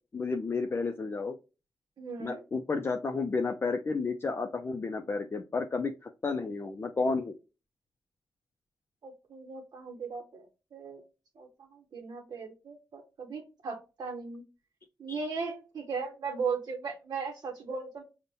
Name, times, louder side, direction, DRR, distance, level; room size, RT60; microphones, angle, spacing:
voice 1, 0.1-1.4 2.2-7.4 15.1-15.2, left 4 dB, 35° left, 5 dB, 0.4 m, -32 dB
voice 2, 2.0-2.4 9.0-11.0 11.4-14.4 15.0-18.0, right 5 dB, 70° right, 1 dB, 0.7 m, -37 dB
5.2 x 2.1 x 2.6 m, 0.30 s
cardioid pair, 75°, 7 cm